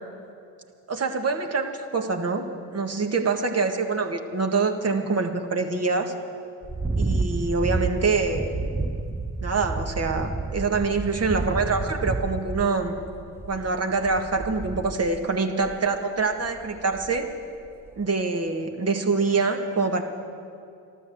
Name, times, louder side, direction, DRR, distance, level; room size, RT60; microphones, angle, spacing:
voice 1, 0.9-6.1 7.0-8.5 9.4-13.0 13.5-17.3 18.0-20.0, right 4 dB, 30° right, 4 dB, 1.7 m, -25 dB
sound 1, 6.6-15.2 15.6-15.9 16.4-17.4 17.7-18.0, right 3 dB, 5° right, 0.4 m, -30 dB
13.0 x 12.5 x 7.9 m, 2.4 s
hypercardioid pair, 65°, 48 cm